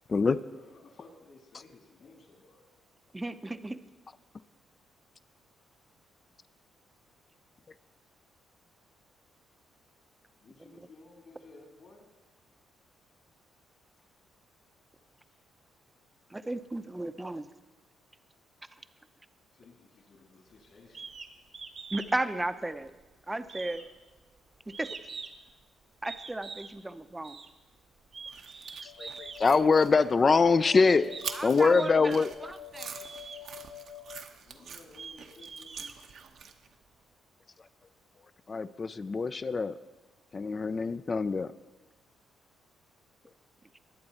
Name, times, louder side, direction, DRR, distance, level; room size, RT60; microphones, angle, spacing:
voice 1, 0.1-2.7 10.4-12.1 15.3-15.4 19.5-21.1 23.5-23.8 34.4-35.9, left 3 dB, 60° left, 0 dB, 3.3 m, -55 dB
voice 2, 3.1-3.8 10.7-10.9 16.3-17.5 21.9-22.9 23.3-23.8 24.7-25.0 26.0-27.4 31.3-33.0, right 2 dB, 15° right, 11 dB, 0.7 m, -35 dB
sound 1, 20.9-21.3 21.5-22.1 22.4-23.1 23.5-25.5 26.0-26.7 27.2-27.5 28.0-29.4 30.2-30.3 30.8-31.4 31.7-32.4 32.9-33.4 34.1-34.2 34.7-36.5, right 5 dB, 45° right, 1.1 m, -44 dB
sound 2, 28.2-36.7, right 7 dB, 65° right, 0.9 m, -45 dB
sound 3, 28.8-34.2, left 9 dB, 90° left, 0.6 m, -47 dB
voice 3, 28.8-31.0 31.4-32.3 38.5-39.7 40.3-41.5, left 4 dB, 35° left, 12 dB, 0.4 m, -24 dB
20.5 x 7.8 x 4.2 m, 1.2 s
cardioid pair, 90°, 0 cm